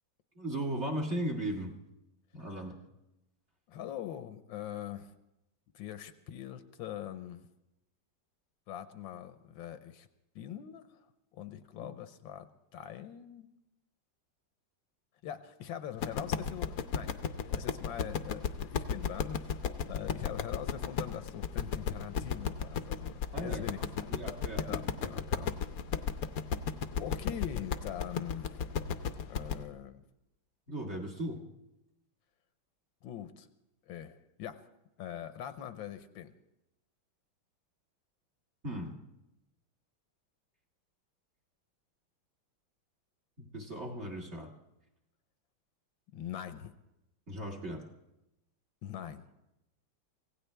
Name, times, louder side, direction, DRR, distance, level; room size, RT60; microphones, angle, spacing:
voice 1, 0.4-1.7 2.3-2.7 23.3-23.6 24.1-25.5 30.7-31.4 38.6-38.9 43.4-44.5 47.3-47.8, right 1 dB, 35° right, 1 dB, 2.1 m, -37 dB
voice 2, 3.7-5.1 5.7-7.5 8.7-10.1 10.3-11.1 11.3-13.5 15.2-24.2 24.6-26.2 27.0-28.6 29.3-30.0 33.0-33.5 33.9-34.6 35.0-36.3 46.1-46.8 48.8-49.3, left 10 dB, 75° left, 11 dB, 1.5 m, -43 dB
sound 1, 16.0-29.6, left 7 dB, 60° left, 1.0 m, -34 dB
25.0 x 16.5 x 3.4 m, 0.92 s
omnidirectional pair, 2.2 m